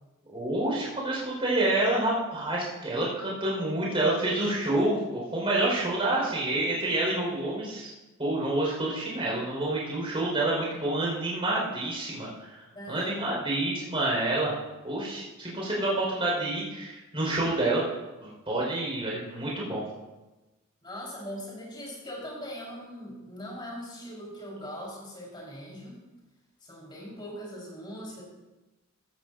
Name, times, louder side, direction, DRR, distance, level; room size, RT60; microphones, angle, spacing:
voice 1, 0.3-7.9 8.2-12.6 12.9-14.5 14.8-17.8 18.2-19.8, right 2 dB, 25° right, -4 dB, 5.0 m, -28 dB
voice 2, 12.7-13.5 20.8-26.0 26.6-28.2, equal, 20° left, -4 dB, 4.5 m, -40 dB
15.5 x 13.5 x 2.7 m, 1.1 s
head